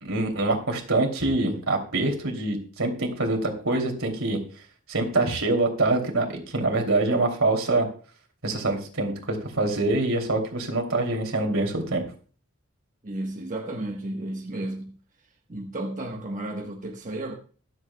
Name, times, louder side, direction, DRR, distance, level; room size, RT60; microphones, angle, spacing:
voice 1, 0.0-4.4 4.9-7.9 8.4-12.0, right 2 dB, 80° right, 3 dB, 2.8 m, -25 dB
voice 2, 13.0-15.0 15.5-17.3, right 1 dB, 35° right, 1 dB, 1.1 m, -33 dB
23.5 x 7.9 x 2.2 m, 0.39 s
head